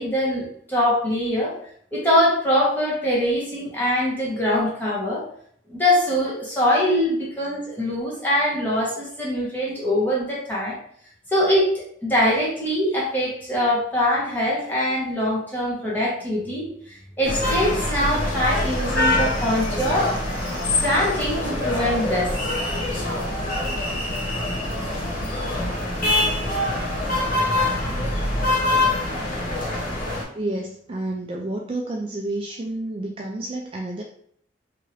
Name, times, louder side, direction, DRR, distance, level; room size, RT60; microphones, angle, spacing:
voice 1, 0.0-1.6 1.9-5.3 5.7-10.8 11.3-20.1 20.8-22.4, left 1 dB, 10° left, -6 dB, 1.0 m, -23 dB
sound 1, 17.2-30.2, left 1 dB, 45° left, 0.8 m, -24 dB
voice 2, 30.2-34.0, right 2 dB, 30° right, -1 dB, 0.3 m, -30 dB
2.8 x 2.6 x 3.0 m, 0.63 s
head